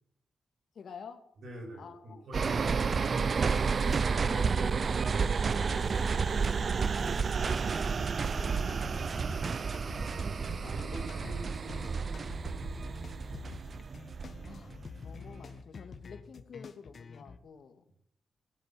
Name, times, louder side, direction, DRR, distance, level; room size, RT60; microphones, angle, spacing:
voice 1, 0.7-1.2 1.8-2.8 4.2-5.5 7.0-7.1 7.4-9.2 9.8-10.0 10.6-11.1 14.4-17.8, left 6 dB, 65° left, 7 dB, 2.1 m, -50 dB
voice 2, 1.4-3.5 5.7-6.5 9.8-10.0 10.6-13.0, right 1 dB, 70° right, 3 dB, 7.2 m, -47 dB
sound 1, 2.3-14.9 15.3-15.4, right 5 dB, 45° right, 0.6 m, -31 dB
sound 2, 8.2-17.4, left 5 dB, 50° left, 1.3 m, -47 dB
19.0 x 8.4 x 9.0 m, 0.70 s
cardioid pair, 100°, 0 cm